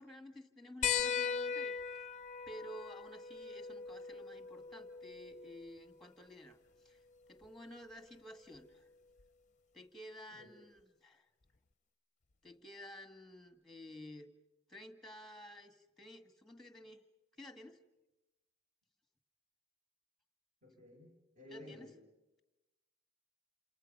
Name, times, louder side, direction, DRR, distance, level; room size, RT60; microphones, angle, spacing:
voice 1, 0.0-1.7 2.5-7.0 7.3-8.9 9.7-11.3 12.4-14.3 14.7-17.0 17.4-17.8 21.5-21.9, equal, ahead, 7 dB, 1.8 m, -53 dB
sound 1, 0.8-5.9 7.4-7.5 9.2-9.3, left 7 dB, 35° left, 0.8 m, -39 dB
voice 2, 20.6-21.9, left 1 dB, 40° right, 0 dB, 6.4 m, -54 dB
28.5 x 28.0 x 5.5 m, 0.99 s
head